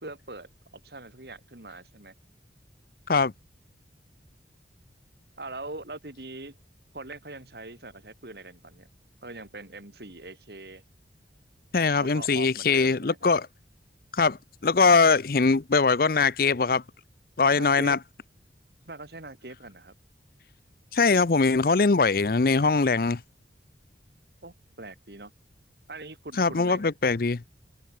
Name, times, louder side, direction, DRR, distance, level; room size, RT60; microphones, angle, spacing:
voice 1, 0.0-2.1 5.4-6.6 6.9-8.9 9.2-10.8 12.0-13.3 17.5-18.0 18.8-19.9 24.4-25.3 25.9-26.9, right 2 dB, 65° right, 2.8 m, -42 dB
voice 2, 11.7-13.5 14.1-14.4 14.6-16.8 17.4-18.0 20.9-23.2 26.4-27.4, left 4 dB, 55° left, 0.6 m, -22 dB
open air
head